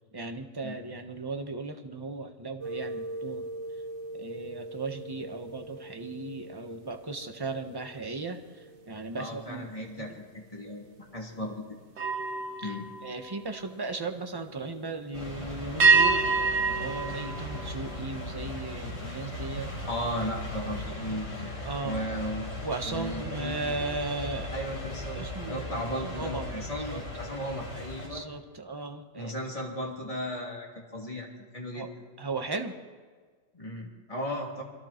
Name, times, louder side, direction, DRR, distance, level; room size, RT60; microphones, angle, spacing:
voice 1, 0.1-3.4 4.1-9.7 10.0-10.1 12.6-12.8 13.0-19.7 20.6-21.0 21.6-22.0 22.6-24.6 25.1-27.0 28.1-29.3 31.7-31.9 32.2-32.8, right 3 dB, 20° right, 5 dB, 1.2 m, -37 dB
sound 1, 2.6-8.2 8.6-8.9 11.9-14.1 15.8-18.4, right 4 dB, 55° right, 1.6 m, -30 dB
voice 2, 9.2-11.6 12.6-12.9 19.9-21.6 21.8-22.5 22.9-23.8 24.5-28.2 29.2-31.9 33.5-34.6, equal, 25° left, -2 dB, 3.3 m, -36 dB
sound 2, 15.1-28.1, left 1 dB, 65° left, 6.4 m, -38 dB
26.5 x 23.5 x 4.5 m, 1.6 s
omnidirectional pair, 1.4 m